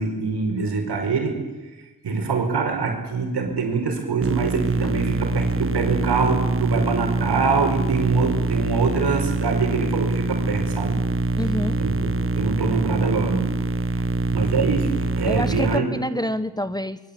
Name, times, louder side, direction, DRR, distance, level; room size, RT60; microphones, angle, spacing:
voice 1, 0.0-1.4 2.0-11.0 11.8-13.5 14.3-16.0, right 4 dB, 90° right, 3 dB, 5.1 m, -24 dB
sound 1, 4.2-15.8, right 3 dB, 35° right, 1.2 m, -24 dB
voice 2, 11.4-11.8 15.2-17.0, left 1 dB, 10° left, 13 dB, 1.2 m, -27 dB
25.5 x 22.0 x 8.5 m, 1.2 s
cardioid pair, 55°, 39 cm